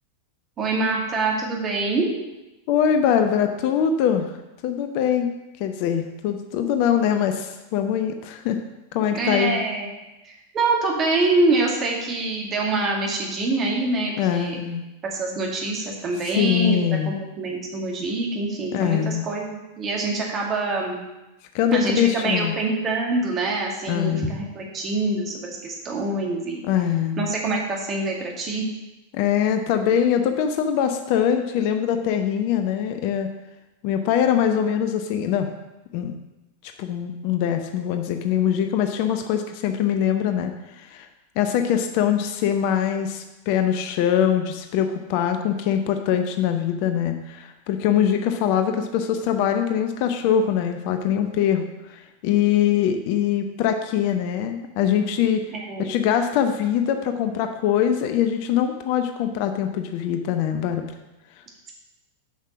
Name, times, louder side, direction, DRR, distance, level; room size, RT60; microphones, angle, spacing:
voice 1, 0.6-2.1 9.1-9.9 10.2-14.6 15.1-16.8 17.0-21.0 21.7-26.6 27.2-28.7 55.5-56.0, right 2 dB, 30° right, -1 dB, 2.0 m, -25 dB
voice 2, 2.7-4.3 4.6-5.3 5.6-8.6 8.9-9.6 14.2-14.8 16.4-17.1 18.7-19.2 21.5-22.5 23.9-24.3 26.6-27.3 29.1-33.3 33.8-35.5 35.9-36.1 36.8-41.1 41.4-55.4 55.8-60.8, left 9 dB, 45° left, 7 dB, 0.7 m, -23 dB
7.4 x 5.6 x 6.1 m, 1.0 s
figure-of-eight pair, 90°, 0 cm